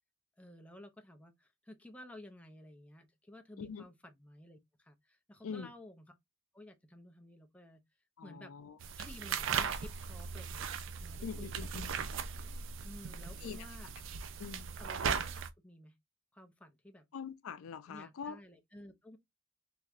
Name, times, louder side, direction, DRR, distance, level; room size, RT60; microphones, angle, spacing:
voice 1, 0.4-6.1 6.5-7.8 8.2-8.5 9.0-10.7 11.0-11.9 12.8-13.9 14.8-15.9 16.3-17.1 17.9-19.2, left 1 dB, 5° left, 0.4 m, -54 dB
voice 2, 8.2-8.8 11.2-12.0 13.4-13.7 14.4-14.7 17.1-18.4, left 6 dB, 90° left, 0.4 m, -44 dB
sound 1, 8.8-15.5, right 6 dB, 65° right, 0.4 m, -38 dB
3.3 x 2.9 x 2.4 m
head